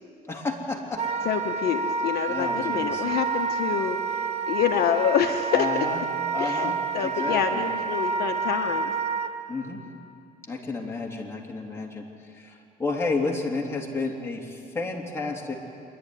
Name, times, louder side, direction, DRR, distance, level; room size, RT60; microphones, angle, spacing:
voice 1, 0.3-1.0 2.3-3.0 5.5-6.0 6.3-7.6 9.5-9.8 10.5-12.0 12.4-15.5, left 3 dB, 15° left, -1 dB, 3.1 m, -31 dB
Wind instrument woodwind instrument, 1.0-9.3, right 5 dB, 40° right, 1.3 m, -28 dB
voice 2, 1.2-4.2 4.5-5.9 6.4-8.9, left 9 dB, 65° left, 5 dB, 1.0 m, -27 dB
25.5 x 11.0 x 9.9 m, 2.5 s
cardioid pair, 110°, 17 cm